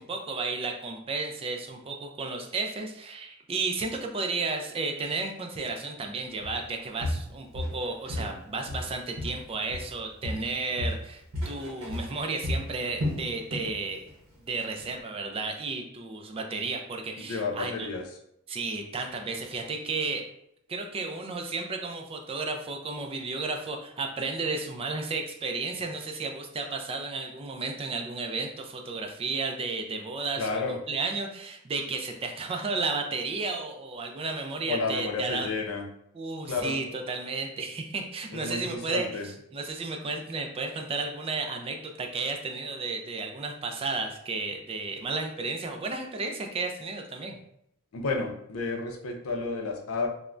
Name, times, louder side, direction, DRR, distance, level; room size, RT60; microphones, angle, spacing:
voice 1, 0.0-14.1 14.5-17.9 18.5-20.3 20.7-35.5 36.1-39.1 39.5-47.4, right 3 dB, 25° right, 4 dB, 0.3 m, -33 dB
Walk footsteps, 6.4-6.6 7.0-8.4 8.7-10.0 10.2-13.8 14.1-14.3 14.8-14.9, left 1 dB, 65° right, 0.7 m, -33 dB
voice 2, 17.2-18.1 30.4-30.8 34.7-35.9 36.4-36.8 38.3-39.3 47.9-50.1, left 3 dB, 75° left, 2 dB, 0.5 m, -31 dB
3.2 x 2.1 x 2.4 m, 0.76 s
head